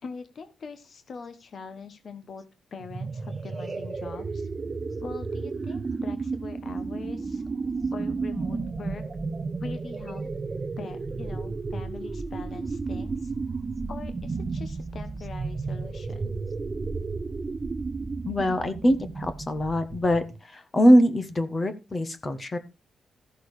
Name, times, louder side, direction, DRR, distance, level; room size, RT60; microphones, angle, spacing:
voice 1, 0.0-2.4 2.7-4.5 5.0-7.4 7.9-9.0 9.6-10.2 10.8-13.3 13.9-16.4, left 5 dB, 40° left, 9 dB, 1.2 m, -42 dB
sound 1, 2.8-20.4, right 4 dB, 25° right, 0.8 m, -33 dB
voice 2, 18.3-22.6, equal, 20° left, 10 dB, 1.3 m, -23 dB
13.5 x 6.5 x 4.9 m, 0.27 s
wide cardioid pair, 175°, 0 cm